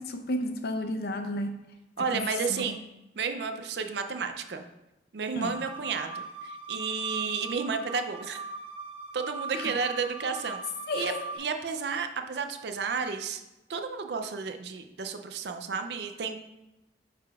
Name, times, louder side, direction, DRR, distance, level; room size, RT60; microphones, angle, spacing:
voice 1, 0.0-1.6 2.1-2.2 2.5-2.6 5.4-5.5 9.5-9.7 10.9-11.3, left 1 dB, 60° left, 5 dB, 0.6 m, -32 dB
voice 2, 2.0-2.8 3.2-4.6 5.1-8.4 9.1-10.6 10.9-13.4 13.7-16.4, right 5 dB, 65° right, 7 dB, 0.4 m, -32 dB
sound 1, 5.4-11.4, right 3 dB, 85° left, 1.2 m, -40 dB
9.4 x 5.0 x 2.3 m, 0.97 s
head